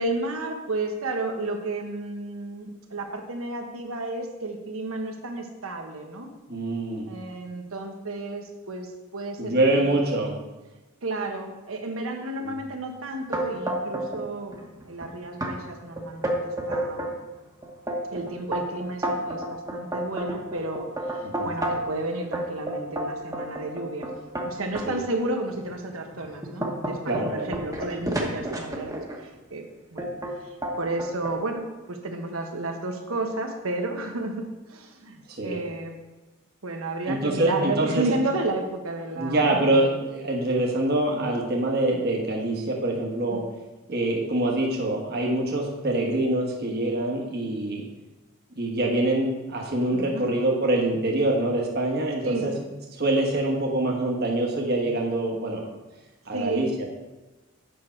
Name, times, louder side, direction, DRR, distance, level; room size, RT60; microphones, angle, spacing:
voice 1, 0.0-6.3 7.1-10.0 11.0-17.2 18.1-24.1 24.4-29.6 29.9-30.1 30.4-36.0 36.6-39.8 43.3-43.4 49.9-50.3 52.2-52.5 56.3-56.7, right 2 dB, 80° right, 4 dB, 1.1 m, -32 dB
voice 2, 6.5-7.1 9.4-10.3 12.4-12.6 21.2-21.6 24.9-25.0 27.1-27.6 35.4-35.6 37.1-38.1 39.2-43.4 43.9-47.9 48.6-52.5 53.0-55.7 56.3-56.7, right 2 dB, 50° right, -1 dB, 1.3 m, -25 dB
sound 1, 13.3-14.2 14.5-15.0 15.4-15.5 16.0-17.1 17.6-21.9 22.3-24.9 25.5-25.6 26.1-29.2 30.0-30.3 30.6-31.4, right 1 dB, 15° right, 1.1 m, -30 dB
8.5 x 6.0 x 4.5 m, 1.1 s
head